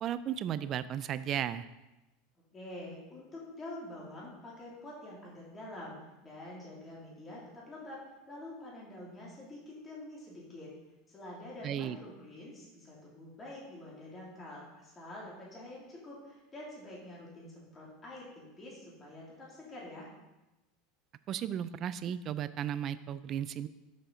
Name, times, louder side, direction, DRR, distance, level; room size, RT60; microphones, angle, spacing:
voice 1, 0.0-1.7 11.6-12.0 21.3-23.7, right 10 dB, 40° right, 14 dB, 0.3 m, -35 dB
voice 2, 2.5-5.9 6.2-10.7 11.1-20.1, left 1 dB, 25° left, -5 dB, 2.7 m, -47 dB
7.1 x 5.4 x 3.9 m, 1.0 s
supercardioid pair, 110°, 0 cm